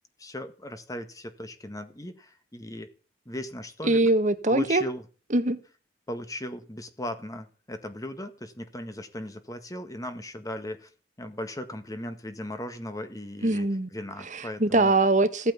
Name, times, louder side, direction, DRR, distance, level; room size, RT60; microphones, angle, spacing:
voice 1, 0.2-2.9 3.2-4.0 4.5-5.0 6.1-10.9 11.2-14.9, left 1 dB, 20° left, 8 dB, 1.6 m, -37 dB
voice 2, 3.8-4.8 5.3-5.6 13.4-13.9 14.3-15.5, right 2 dB, 40° right, 11 dB, 1.6 m, -22 dB
16.0 x 8.9 x 7.0 m, 0.37 s
head